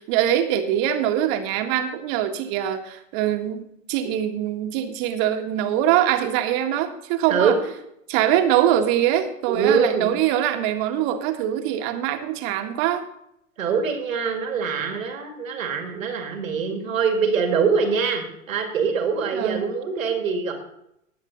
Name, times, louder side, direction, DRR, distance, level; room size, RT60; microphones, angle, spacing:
voice 1, 0.0-7.5 8.1-13.0 19.3-19.7, right 11 dB, 50° right, 6 dB, 1.8 m, -23 dB
voice 2, 7.3-7.6 9.5-10.1 13.6-20.5, right 6 dB, 75° right, 5 dB, 2.1 m, -23 dB
19.0 x 7.2 x 4.0 m, 0.79 s
hypercardioid pair, 90°, 40 cm